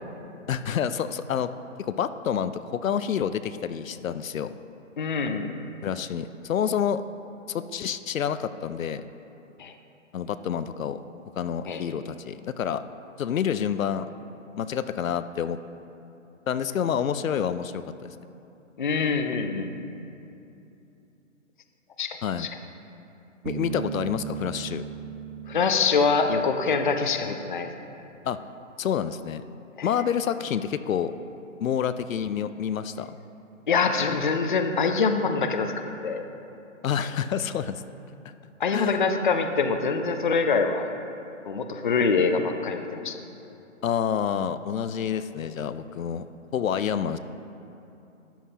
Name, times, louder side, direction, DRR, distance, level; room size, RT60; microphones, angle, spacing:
voice 1, 0.5-1.5 1.8-4.5 5.8-7.0 7.5-9.1 10.1-11.0 11.4-12.8 13.2-14.1 14.6-15.6 16.5-18.1 22.2-22.5 23.4-24.8 28.2-28.4 28.8-29.4 29.8-31.1 31.6-33.2 36.8-37.8 38.2-38.3 38.7-39.0 43.8-47.2, left 8 dB, 85° left, 12 dB, 0.6 m, -28 dB
voice 2, 5.0-5.6 9.6-9.7 11.7-11.8 18.8-19.8 22.0-22.5 25.5-27.7 29.8-29.9 33.7-36.3 38.6-40.9 41.5-43.2, left 5 dB, 40° left, 6 dB, 0.5 m, -25 dB
Bass guitar, 23.4-27.1, right 8 dB, 65° right, 0.5 m, -37 dB
13.0 x 10.0 x 2.8 m, 2.8 s
hypercardioid pair, 165°, 39 cm